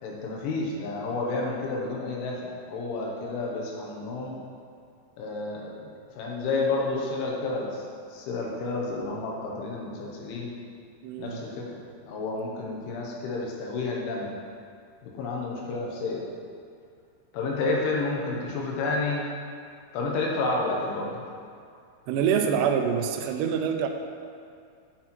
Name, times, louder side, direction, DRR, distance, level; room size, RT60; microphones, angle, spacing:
voice 1, 0.0-4.4 5.2-7.8 8.1-10.5 11.2-14.3 15.0-16.2 17.3-19.3 19.9-21.2, left 3 dB, 80° left, -2 dB, 3.6 m, -30 dB
voice 2, 11.0-11.4 22.1-23.9, right 7 dB, 90° right, 4 dB, 2.5 m, -25 dB
9.9 x 6.3 x 4.4 m, 2.4 s
omnidirectional pair, 5.5 m